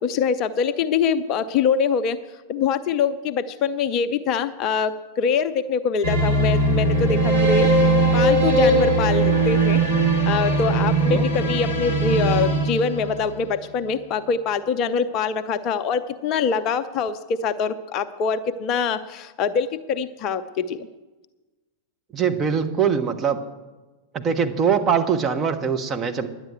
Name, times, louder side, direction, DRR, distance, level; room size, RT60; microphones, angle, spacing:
voice 1, 0.0-2.2 2.5-9.8 10.3-20.9, left 6 dB, 40° left, 11 dB, 0.6 m, -24 dB
sound 1, 6.0-13.5, right 2 dB, 85° right, 2.7 m, -20 dB
voice 2, 22.1-23.4 24.1-26.3, right 7 dB, 25° right, 4 dB, 1.2 m, -22 dB
11.0 x 8.9 x 8.2 m, 1.2 s
figure-of-eight pair, 90°, 0 cm